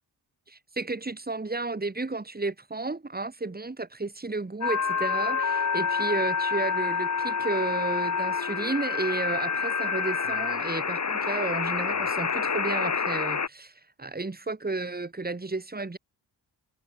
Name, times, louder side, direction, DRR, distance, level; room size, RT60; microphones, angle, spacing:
voice 1, 0.5-16.0, right 3 dB, 20° right, 5.3 m, -32 dB
sound 1, 4.6-13.5, left 5 dB, 40° left, 3.5 m, -28 dB
wide cardioid pair, 110°, 41 cm